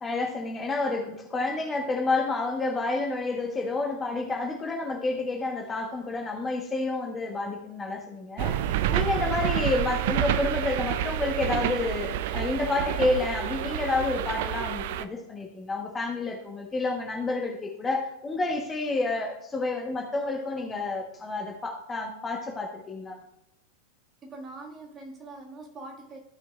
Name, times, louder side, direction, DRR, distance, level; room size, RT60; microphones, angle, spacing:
voice 1, 0.0-8.5 8.9-23.2, left 3 dB, 15° left, 1 dB, 1.1 m, -29 dB
sound 1, 8.4-15.0, right 11 dB, 50° right, 0.4 m, -28 dB
voice 2, 24.2-26.2, right 2 dB, 25° right, 1 dB, 1.8 m, -43 dB
15.0 x 5.8 x 2.4 m, 0.80 s
figure-of-eight pair, 90°, 0 cm